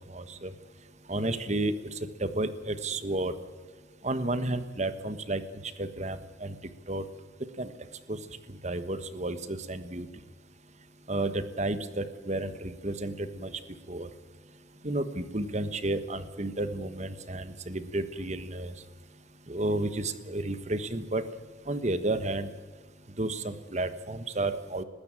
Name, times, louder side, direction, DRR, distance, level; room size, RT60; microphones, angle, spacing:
voice 1, 0.1-0.5 1.1-1.7 2.2-3.3 4.0-6.5 6.9-7.0 7.6-7.7 8.1-8.2 8.6-10.1 11.1-13.5 13.9-14.1 14.8-18.7 19.5-21.2 21.7-22.5 23.2-24.8, right 2 dB, 35° right, 12 dB, 1.3 m, -31 dB
20.0 x 16.0 x 8.9 m, 1.4 s
head